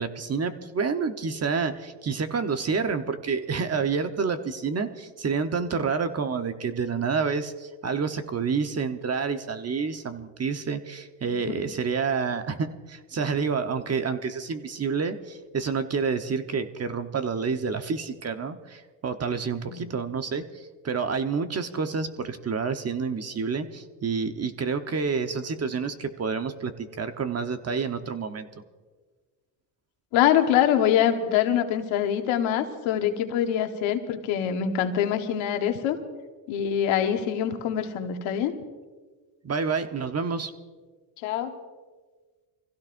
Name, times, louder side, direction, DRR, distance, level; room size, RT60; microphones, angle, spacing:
voice 1, 0.0-28.5 39.4-40.5, right 5 dB, 30° right, 8 dB, 1.1 m, -28 dB
voice 2, 30.1-36.0 36.5-38.5 41.2-41.6, left 10 dB, 75° left, 6 dB, 1.5 m, -24 dB
25.0 x 16.0 x 2.6 m, 1.4 s
supercardioid pair, 95°, 47 cm